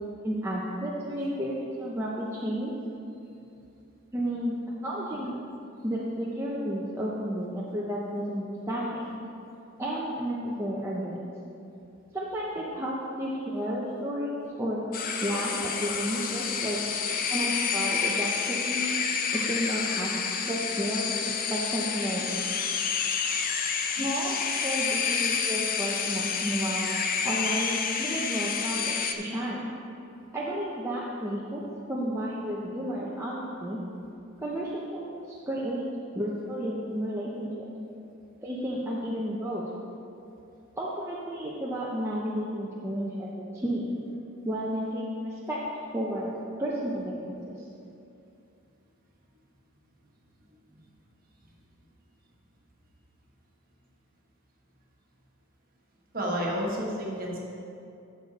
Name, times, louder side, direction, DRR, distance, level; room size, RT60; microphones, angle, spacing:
voice 1, 0.2-2.8 4.1-5.4 5.8-9.2 9.8-11.2 12.1-14.8 15.2-16.8 17.3-18.9 19.3-20.2 20.4-21.1 21.5-22.4 24.0-26.9 27.2-29.6 30.3-33.8 34.4-35.9 36.1-37.5 38.4-39.6 40.8-43.9 44.4-45.6 45.9-46.3 46.6-47.6, equal, 10° right, -6 dB, 0.7 m, -32 dB
sound 1, 14.9-29.1, left 6 dB, 40° left, 0.5 m, -29 dB
voice 2, 56.1-57.4, equal, 40° right, -3 dB, 1.5 m, -30 dB
9.8 x 6.8 x 4.1 m, 2.7 s
head